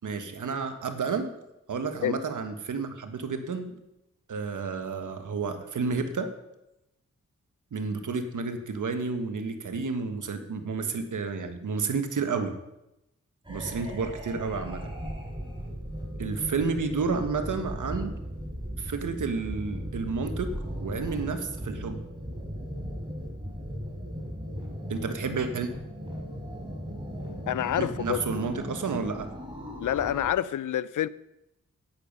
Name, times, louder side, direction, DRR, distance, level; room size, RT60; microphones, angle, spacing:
voice 1, 0.0-1.3 1.7-3.7 4.3-6.3 7.7-12.5 13.5-14.9 16.2-18.2 18.8-20.5 20.8-22.0 24.9-25.7 27.8-29.3, right 4 dB, 75° right, 1.4 m, -31 dB
sound 1, 13.4-30.3, equal, 15° right, 4.3 m, -37 dB
voice 2, 27.5-28.2 29.8-31.1, left 11 dB, 75° left, 0.5 m, -27 dB
10.5 x 9.0 x 5.5 m
cardioid pair, 40°, 31 cm